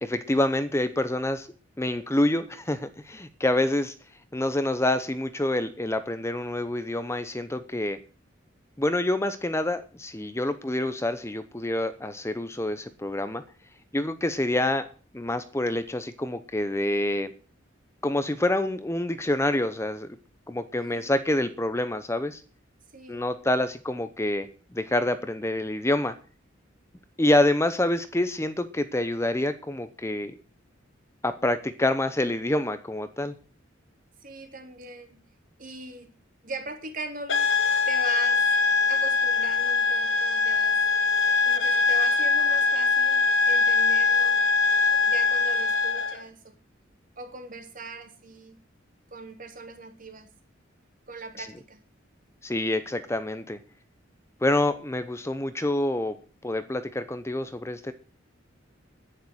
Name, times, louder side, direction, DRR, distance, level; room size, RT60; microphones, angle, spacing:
voice 1, 0.0-1.5 1.8-3.9 4.3-8.0 8.8-13.4 13.9-14.9 15.1-17.3 18.0-20.1 20.5-22.4 23.1-24.5 24.7-26.1 27.2-30.3 31.2-33.3 51.4-51.5 52.4-53.6 54.4-56.1 56.4-57.9, left 1 dB, 15° left, 11 dB, 0.8 m, -27 dB
voice 2, 20.8-21.1 22.9-23.3 34.2-35.2 35.6-36.1 36.4-37.5 37.9-38.4 38.9-40.8 41.4-44.4 45.0-46.5 47.2-48.6 49.1-50.3 51.1-51.8, right 3 dB, 45° right, 4 dB, 3.3 m, -40 dB
sound 1, 37.3-46.2, left 4 dB, 80° left, 1.5 m, -22 dB
10.5 x 10.0 x 7.9 m, 0.39 s
head